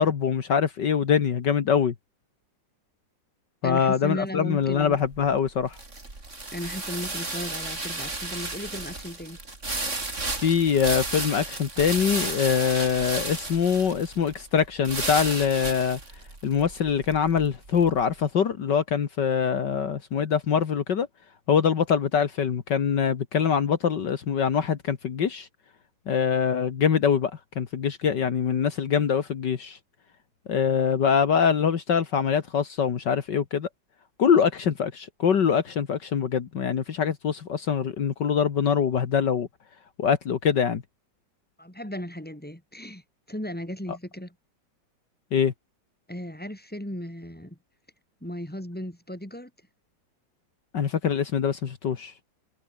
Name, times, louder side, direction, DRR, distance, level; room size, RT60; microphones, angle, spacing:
voice 1, 0.0-1.9 3.6-5.8 10.4-16.0 16.4-21.1 21.5-25.5 26.1-29.8 30.5-33.7 34.2-39.5 40.0-40.8 45.3-45.5 50.7-52.1, left 7 dB, 65° left, 2.2 m, -24 dB
voice 2, 3.6-5.0 6.5-9.4 41.6-43.0 43.3-44.3 46.1-47.6 48.2-49.5, equal, 5° left, 5.1 m, -36 dB
sound 1, 4.7-18.0, right 2 dB, 40° right, 4.7 m, -34 dB
omnidirectional pair, 2.0 m